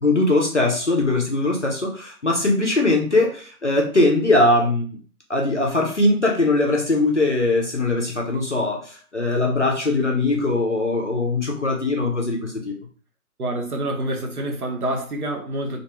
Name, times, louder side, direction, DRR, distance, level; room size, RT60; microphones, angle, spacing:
voice 1, 0.0-5.0 5.3-12.8, left 2 dB, 55° left, 0.5 m, -21 dB
voice 2, 13.4-15.8, right 1 dB, 75° right, 0.9 m, -27 dB
2.5 x 2.3 x 2.8 m
figure-of-eight pair, 180°, 45 cm